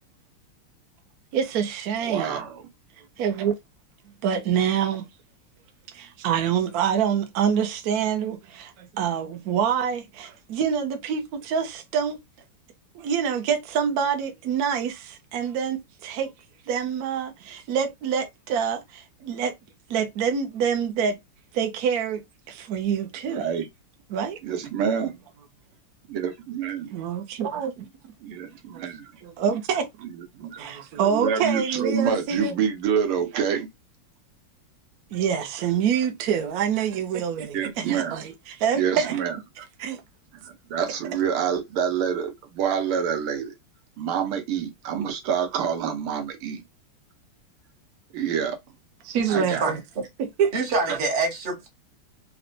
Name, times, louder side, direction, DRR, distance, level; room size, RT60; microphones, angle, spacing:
voice 1, 1.3-2.4 3.0-3.6 4.2-5.1 5.9-12.2 12.9-16.3 16.7-19.5 19.9-21.2 21.5-23.4 24.1-24.4 26.8-27.9 28.7-28.8 29.2-29.9 30.5-32.5 35.1-39.2 39.6-40.0 49.0-49.8 50.2-50.5 50.9-51.0, right 7 dB, 65° right, 0.9 m, -26 dB
voice 2, 2.0-2.6 23.3-23.7 24.4-25.1 26.1-26.9 28.2-29.0 30.4-30.6 31.0-33.7 37.5-38.2 38.8-39.3 40.4-43.5 44.0-46.6 48.1-48.6 49.3-49.6 50.9-51.0, right 7 dB, 85° right, 1.7 m, -27 dB
voice 3, 49.2-49.7 50.5-51.7, right 3 dB, 35° right, 0.8 m, -26 dB
4.1 x 2.2 x 2.5 m
omnidirectional pair, 2.3 m